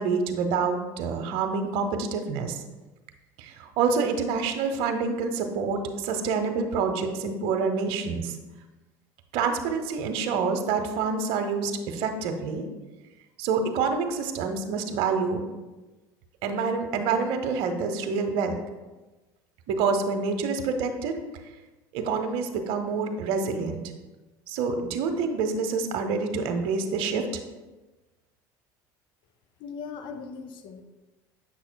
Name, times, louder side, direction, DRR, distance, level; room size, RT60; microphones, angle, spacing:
voice 1, 0.0-2.6 3.4-8.4 9.3-12.7 13.4-15.4 16.4-18.6 19.7-21.1 21.9-23.8 24.5-27.3, right 5 dB, 65° right, 6 dB, 0.7 m, -27 dB
voice 2, 29.6-30.8, left 5 dB, 50° left, 8 dB, 0.7 m, -39 dB
7.4 x 5.8 x 2.2 m, 1.1 s
supercardioid pair, 95°, 10 cm